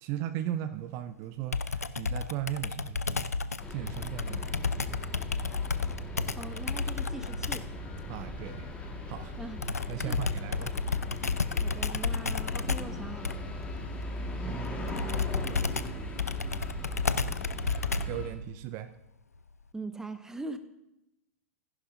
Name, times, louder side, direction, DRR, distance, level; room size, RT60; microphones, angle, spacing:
voice 1, 0.0-3.3 3.7-5.0 8.1-8.7 9.1-9.3 9.9-10.7 14.4-14.8 18.0-18.9, right 12 dB, 40° right, 11 dB, 0.5 m, -37 dB
Computer keyboard, 1.5-7.8 9.6-18.3, left 4 dB, 85° left, 0.4 m, -32 dB
sound 1, 3.6-18.3, left 1 dB, 15° left, 1.7 m, -38 dB
voice 2, 6.3-7.7 9.4-9.6 10.0-10.2 11.6-13.4 19.7-20.6, right 2 dB, 5° right, 10 dB, 0.8 m, -41 dB
14.5 x 11.0 x 2.6 m, 0.90 s
figure-of-eight pair, 100°, 8 cm